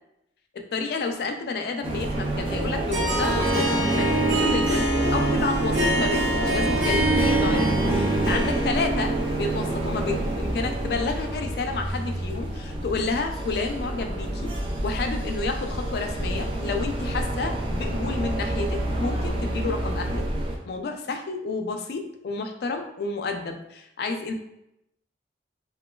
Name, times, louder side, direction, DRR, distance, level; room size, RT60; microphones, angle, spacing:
voice 1, 0.5-14.5 14.8-20.2 20.6-24.3, left 3 dB, 55° left, 5 dB, 0.3 m, -30 dB
sound 1, 1.8-20.6, right 1 dB, 30° right, 0.3 m, -28 dB
Harp, 2.9-11.3, right 1 dB, 85° right, 0.9 m, -26 dB
2.9 x 2.2 x 2.2 m, 0.83 s
head